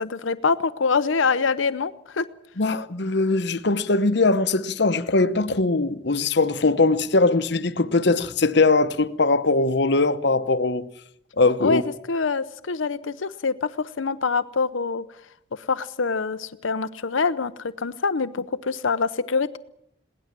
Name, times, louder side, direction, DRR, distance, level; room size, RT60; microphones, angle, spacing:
voice 1, 0.0-2.2 11.6-11.8 12.1-15.0 15.5-19.6, left 4 dB, 90° left, 0.7 m, -25 dB
voice 2, 2.6-10.9 11.4-11.8, left 3 dB, 60° left, 1.0 m, -21 dB
21.5 x 18.0 x 7.5 m
head